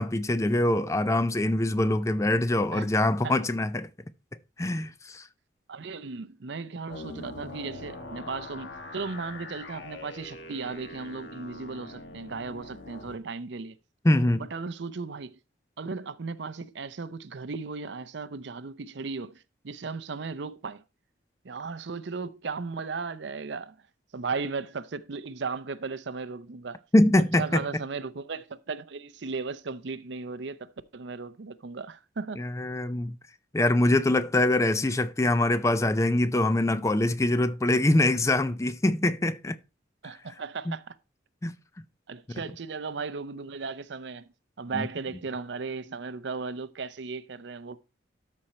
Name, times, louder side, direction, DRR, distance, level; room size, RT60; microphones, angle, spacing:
voice 1, 0.0-3.9 4.6-5.3 14.0-14.5 26.9-27.6 32.4-33.2 33.5-39.6 40.7-40.8 41.4-41.5 44.7-44.9, left 1 dB, 15° left, 0.4 m, -24 dB
voice 2, 5.7-13.8 14.4-15.4 15.8-20.8 21.4-23.8 24.1-26.8 27.2-32.4 40.0-40.9 42.1-44.3 44.6-47.8, right 4 dB, 70° right, 0.6 m, -36 dB
sound 1, 6.9-13.2, left 2 dB, 65° left, 1.4 m, -43 dB
13.0 x 4.3 x 4.3 m
head